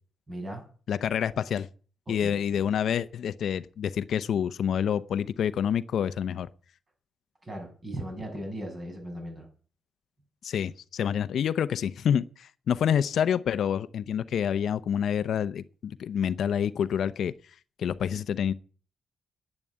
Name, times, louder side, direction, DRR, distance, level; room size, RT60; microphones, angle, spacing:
voice 1, 0.3-0.7 2.1-2.4 7.4-9.5, right 1 dB, 25° right, 7.0 m, -37 dB
voice 2, 0.9-1.7 2.1-6.5 10.4-17.3 17.8-18.5, left 8 dB, 65° left, 0.7 m, -27 dB
11.0 x 9.9 x 9.1 m
cardioid pair, 140°, 0 cm